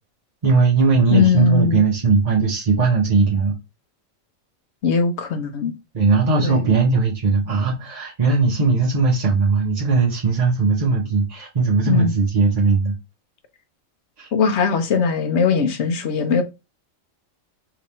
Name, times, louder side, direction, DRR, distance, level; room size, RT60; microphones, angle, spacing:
voice 1, 0.4-3.6 5.9-12.9 14.2-14.3, right 4 dB, 40° right, 0.7 m, -19 dB
voice 2, 1.1-1.8 4.8-5.7 6.4-6.6 11.9-12.1 14.3-16.4, left 5 dB, 60° left, 1.0 m, -19 dB
3.5 x 2.9 x 4.1 m
omnidirectional pair, 1.4 m